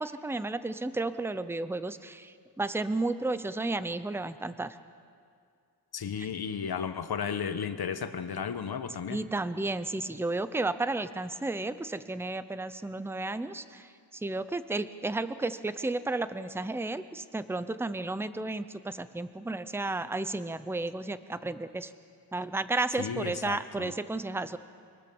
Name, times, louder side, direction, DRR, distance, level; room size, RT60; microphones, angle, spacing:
voice 1, 0.0-4.8 6.2-6.3 9.1-13.9 14.1-21.9 22.3-24.6, right 2 dB, 5° right, 13 dB, 0.6 m, -33 dB
voice 2, 5.9-9.2 23.0-23.9, left 7 dB, 60° left, 9 dB, 1.3 m, -34 dB
25.5 x 19.0 x 7.1 m, 2.3 s
wide cardioid pair, 125°, 42 cm